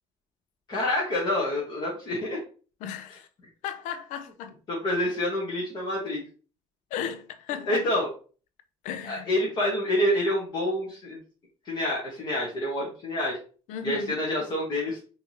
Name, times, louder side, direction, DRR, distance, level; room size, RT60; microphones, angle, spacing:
voice 1, 0.7-2.4 4.7-6.2 7.7-8.1 9.0-11.2 11.6-13.4 13.8-15.0, left 1 dB, 35° left, 1.1 m, -27 dB
voice 2, 2.8-3.3 3.6-4.6 6.9-7.8 8.8-9.3 13.7-14.2, left 8 dB, 70° left, 0.6 m, -35 dB
5.6 x 2.7 x 3.0 m
cardioid pair, 165°, 13 cm